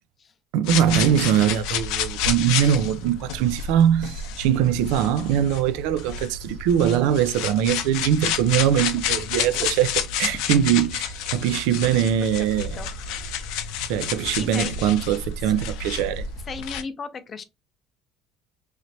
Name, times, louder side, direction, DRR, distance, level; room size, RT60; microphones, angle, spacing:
voice 1, 0.5-9.9 10.2-12.8 13.9-16.3, right 10 dB, 90° right, 0.3 m, -22 dB
sound 1, 0.6-16.8, left 7 dB, 85° left, 0.5 m, -30 dB
voice 2, 12.4-12.9 13.8-14.0 14.3-14.8 15.4-15.5 15.9-16.0 16.5-17.4, left 5 dB, 30° left, 0.5 m, -36 dB
3.2 x 3.0 x 2.7 m
cardioid pair, 140°, 0 cm